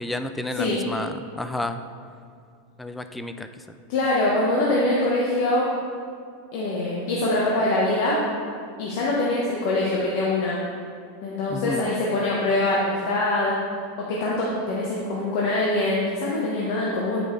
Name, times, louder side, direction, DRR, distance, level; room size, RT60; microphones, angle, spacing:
voice 1, 0.0-1.8 2.8-3.8 11.5-11.8, left 1 dB, 5° left, 9 dB, 0.4 m, -31 dB
voice 2, 3.9-5.7 6.5-8.2 8.8-10.6 11.2-13.5 14.1-17.2, left 2 dB, 60° left, -5 dB, 1.1 m, -23 dB
8.9 x 5.0 x 3.2 m, 2.3 s
supercardioid pair, 130°, 0 cm